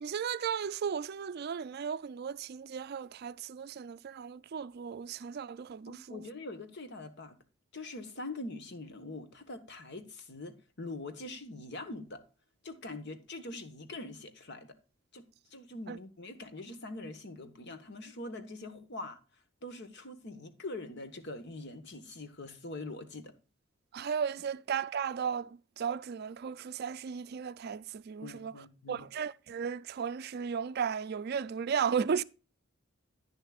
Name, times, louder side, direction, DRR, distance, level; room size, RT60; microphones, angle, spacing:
voice 1, 0.0-6.2 15.9-16.0 23.9-28.5 28.9-32.2, right 7 dB, 50° right, 0.4 m, -35 dB
voice 2, 5.9-7.4 7.7-12.2 12.6-14.8 15.1-19.2 19.6-23.3 28.2-29.1, left 2 dB, 60° left, 1.3 m, -43 dB
10.5 x 10.0 x 2.4 m
head